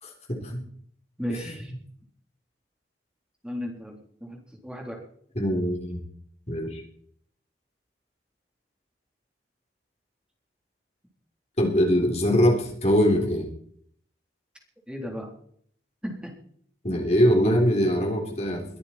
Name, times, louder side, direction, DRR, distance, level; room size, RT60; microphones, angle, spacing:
voice 1, 0.0-0.6 1.3-1.5 5.4-6.0 6.5-6.8 11.6-13.5 16.8-18.6, equal, 35° left, 1 dB, 3.5 m, -23 dB
voice 2, 1.2-1.7 3.4-5.0 14.9-15.3 16.0-16.4, equal, 5° right, 0 dB, 3.7 m, -35 dB
22.5 x 14.0 x 4.4 m, 0.62 s
head